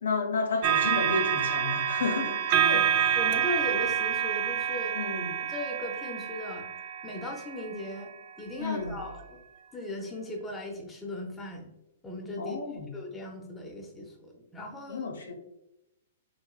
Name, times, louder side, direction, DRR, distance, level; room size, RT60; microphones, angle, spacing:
voice 1, 0.0-2.4 2.7-3.2 4.9-5.4 8.6-8.9 12.4-12.9 14.9-15.3, left 4 dB, 80° left, 0.7 m, -32 dB
sound 1, 0.6-8.1 8.9-9.0, right 9 dB, 50° right, 0.3 m, -28 dB
voice 2, 3.2-5.0 5.5-6.7 7.0-8.1 8.4-9.4 9.7-11.7 12.0-12.6 12.9-15.1, left 1 dB, 15° left, 0.7 m, -37 dB
3.8 x 3.1 x 2.2 m
hypercardioid pair, 120°, 0 cm